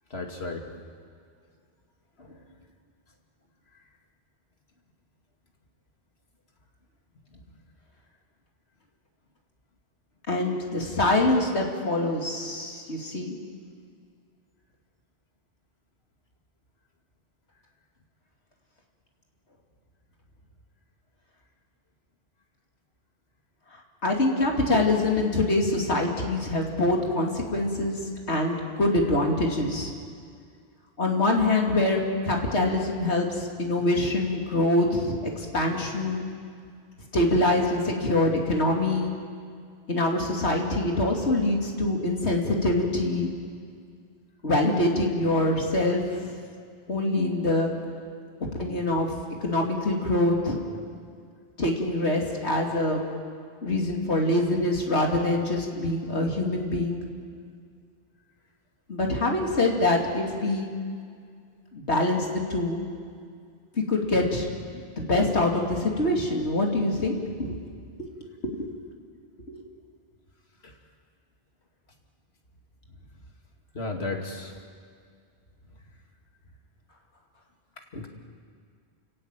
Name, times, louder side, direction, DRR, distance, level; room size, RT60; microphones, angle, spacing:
voice 1, 0.1-0.7 2.2-2.4 70.6-70.7 73.7-74.5 77.9-78.1, left 3 dB, 70° left, 2 dB, 2.7 m, -34 dB
voice 2, 10.3-13.4 23.7-28.0 28.3-29.9 31.0-36.2 37.1-39.1 39.9-43.3 44.4-46.3 46.9-47.7 48.6-49.1 49.4-50.6 51.6-53.0 53.6-57.0 58.9-60.7 61.7-62.8 63.7-64.5 65.0-67.6 68.0-68.1 68.4-68.7 69.5-69.6, left 2 dB, 90° left, 0 dB, 3.0 m, -25 dB
29.5 x 16.0 x 9.1 m, 2.2 s
omnidirectional pair, 1.1 m